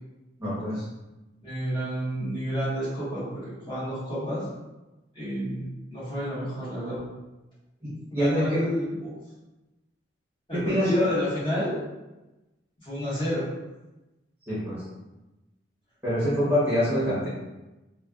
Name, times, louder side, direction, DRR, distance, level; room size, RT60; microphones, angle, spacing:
voice 1, 0.4-0.8 7.8-8.6 10.5-11.1 14.5-14.8 16.0-17.3, equal, 10° right, -11 dB, 0.9 m, -25 dB
voice 2, 1.4-4.5 5.1-7.0 8.1-9.1 10.5-11.8 12.8-13.5, equal, 25° left, -11 dB, 1.3 m, -30 dB
3.2 x 2.2 x 2.4 m, 1.0 s
head